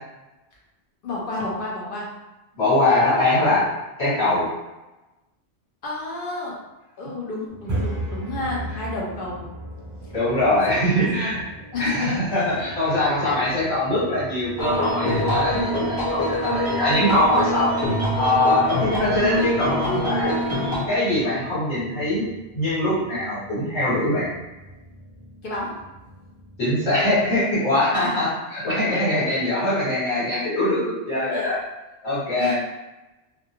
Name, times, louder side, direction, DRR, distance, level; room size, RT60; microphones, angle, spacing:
voice 1, 1.0-2.1 5.8-6.6 7.0-9.4 10.1-10.2 10.8-11.4 11.7-12.7 25.4-25.7 27.9-28.2 31.3-31.6 32.4-32.5, left 3 dB, 60° left, -4 dB, 0.7 m, -30 dB
voice 2, 2.6-3.7 4.0-4.5 10.1-11.4 11.8-17.7 18.1-20.4 20.9-22.3 22.5-24.3 26.6-31.6 32.0-32.5, left 1 dB, 80° left, -11 dB, 1.5 m, -22 dB
sound 1, 7.5-27.4, right 1 dB, 30° right, 0.3 m, -39 dB
sound 2, 14.6-20.8, equal, 25° left, 0.7 m, -24 dB
2.5 x 2.2 x 2.8 m, 1.0 s
omnidirectional pair, 1.2 m